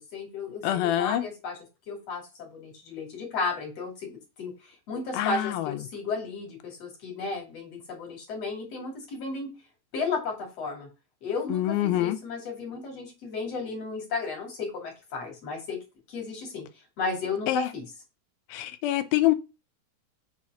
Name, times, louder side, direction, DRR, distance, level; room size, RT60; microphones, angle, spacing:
voice 1, 0.1-1.6 1.9-9.5 9.9-10.9 11.2-15.8 16.1-16.7 17.0-17.8, left 4 dB, 45° left, 3.7 m, -34 dB
voice 2, 0.6-1.2 5.1-5.7 11.5-12.2 17.5-17.7 18.5-19.3, left 14 dB, 90° left, 2.6 m, -25 dB
7.3 x 4.3 x 6.2 m
omnidirectional pair, 4.3 m